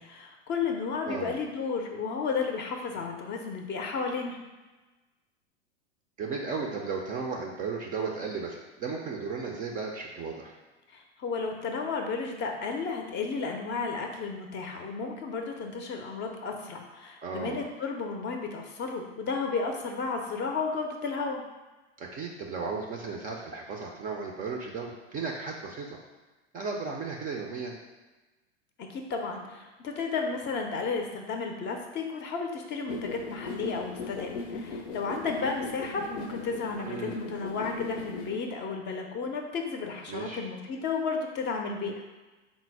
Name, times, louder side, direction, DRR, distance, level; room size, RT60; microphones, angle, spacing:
voice 1, 0.0-4.4 10.9-21.4 28.8-42.0, left 4 dB, 30° left, 3 dB, 0.5 m, -33 dB
voice 2, 1.0-1.4 6.2-10.6 17.2-17.6 22.0-26.0 26.5-27.8 36.8-37.2 40.1-40.4, right 4 dB, 25° right, 0 dB, 0.4 m, -35 dB
sound 1, 32.9-38.4, left 3 dB, 75° left, 0.6 m, -38 dB
4.1 x 2.0 x 4.5 m, 1.2 s
hypercardioid pair, 105°, 36 cm